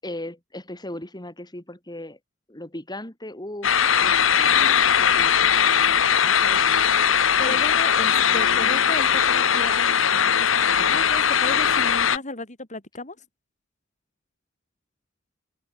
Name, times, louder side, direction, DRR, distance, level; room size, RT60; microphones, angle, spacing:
voice 1, 0.0-2.2 2.5-4.6 5.0-5.5, left 1 dB, 20° left, 5.9 m, -37 dB
sound 1, 3.6-12.2, left 8 dB, 75° left, 1.4 m, -20 dB
voice 2, 6.2-6.8 7.0-13.2, left 2 dB, 40° left, 5.3 m, -35 dB
open air
head